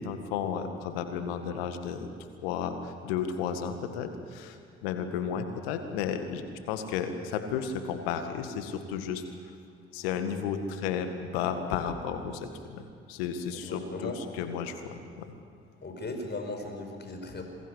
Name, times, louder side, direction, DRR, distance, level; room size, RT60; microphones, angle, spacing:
voice 1, 0.0-2.1 2.4-9.2 9.9-12.8 13.1-15.3, left 7 dB, 75° left, 8 dB, 2.0 m, -33 dB
voice 2, 13.5-14.2 15.8-17.4, left 2 dB, 35° left, 5 dB, 5.3 m, -37 dB
27.5 x 22.5 x 8.4 m, 2.2 s
figure-of-eight pair, 45°, 30 cm